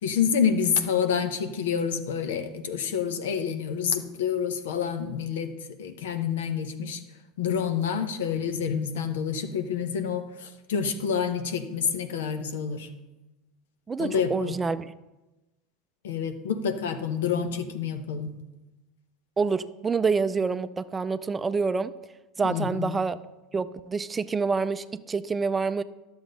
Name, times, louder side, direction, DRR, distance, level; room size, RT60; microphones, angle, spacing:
voice 1, 0.0-5.5 5.8-7.0 7.4-12.9 14.0-14.5 16.0-18.3 22.4-23.0, left 7 dB, 75° left, 8 dB, 0.8 m, -28 dB
voice 2, 13.9-14.9 19.4-21.9 22.4-23.2 23.5-25.8, right 4 dB, 20° right, 13 dB, 0.4 m, -27 dB
12.0 x 7.1 x 3.9 m, 1.0 s
hypercardioid pair, 80°, 0 cm